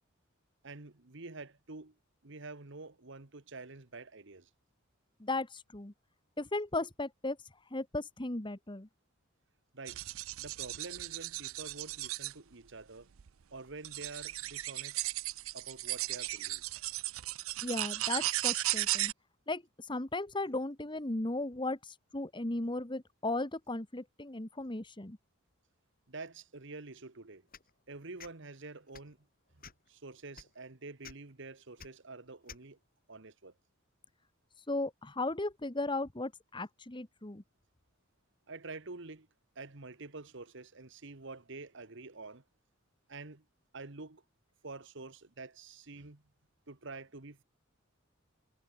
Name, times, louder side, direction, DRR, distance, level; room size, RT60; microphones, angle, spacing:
voice 1, 0.6-1.9 2.2-4.5 9.7-10.0 10.4-13.1 13.5-15.0 15.5-16.6 26.1-27.4 27.9-29.2 29.9-32.8 33.1-33.5 38.5-39.3 39.5-42.4 43.1-43.4 43.7-44.2 44.6-46.2 46.7-47.4, right 3 dB, 60° right, 1.5 m, -47 dB
voice 2, 5.2-5.9 6.4-7.4 7.7-8.9 17.6-19.1 19.5-25.2 34.7-37.4, left 2 dB, 25° left, 1.4 m, -36 dB
sound 1, 9.9-12.3 13.2-13.3 13.8-19.1, right 17 dB, 90° right, 0.5 m, -36 dB
sound 2, 27.5-27.7 28.2-28.3 28.9-29.1 29.6-29.9 30.3-30.5 31.0-31.1 31.8-31.9 32.5-32.6, left 6 dB, 45° left, 5.2 m, -50 dB
head